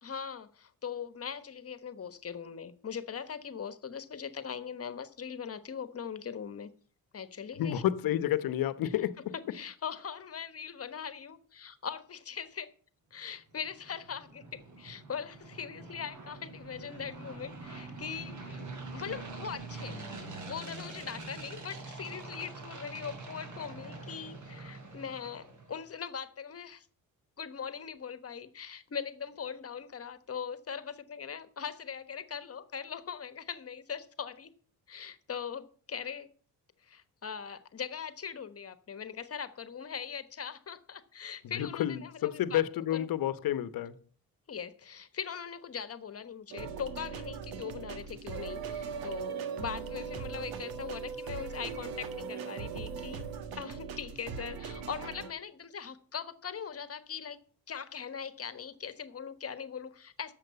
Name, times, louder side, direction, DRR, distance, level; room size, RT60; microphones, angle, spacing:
voice 1, 0.0-6.7 7.1-7.8 8.8-12.7 13.1-20.0 20.5-26.9 27.4-34.5 34.9-36.3 36.8-42.6 42.9-43.1 44.5-53.3 53.6-57.4 57.7-60.3, left 7 dB, 40° left, 1.3 m, -41 dB
voice 2, 7.6-9.3 41.5-44.0, left 12 dB, 70° left, 1.0 m, -30 dB
sound 1, 13.5-25.8, right 3 dB, 55° right, 4.0 m, -45 dB
sound 2, 46.5-55.3, right 6 dB, 85° right, 1.6 m, -39 dB
11.0 x 7.6 x 6.8 m
cardioid pair, 90°, 36 cm